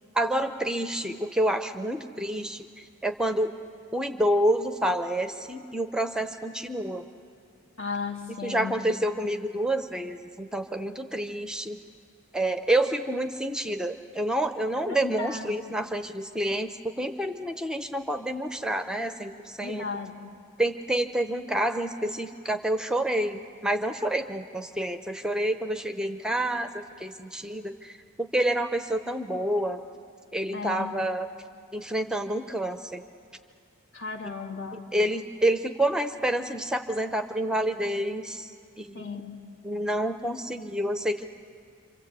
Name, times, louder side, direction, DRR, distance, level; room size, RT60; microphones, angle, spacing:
voice 1, 0.1-3.5 3.9-7.0 8.3-11.8 12.3-19.8 20.6-29.8 30.3-31.3 31.7-33.0 34.7-38.5 38.8-39.1 39.6-41.3, right 1 dB, 5° right, 8 dB, 0.6 m, -28 dB
voice 2, 7.8-8.7 14.9-15.6 19.6-20.3 30.5-30.9 33.9-34.8 38.9-39.4, left 5 dB, 60° left, 2 dB, 2.1 m, -35 dB
27.0 x 26.5 x 8.2 m, 2.3 s
head